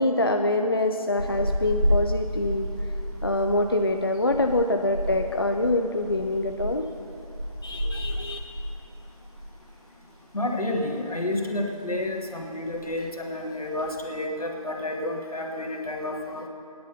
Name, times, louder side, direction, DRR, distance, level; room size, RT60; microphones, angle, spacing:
voice 1, 0.0-2.7 3.2-6.9 7.6-8.4, left 1 dB, 40° left, 5 dB, 0.5 m, -25 dB
sound 1, 1.2-9.7 9.9-10.2 10.6-11.4 11.7-12.1 12.4-12.5 12.6-13.1 13.6-14.1, equal, 45° right, 3.2 m, -31 dB
voice 2, 10.3-16.5, left 1 dB, 75° left, 1 dB, 2.1 m, -30 dB
17.0 x 10.5 x 5.6 m, 2.7 s
figure-of-eight pair, 165°, 19 cm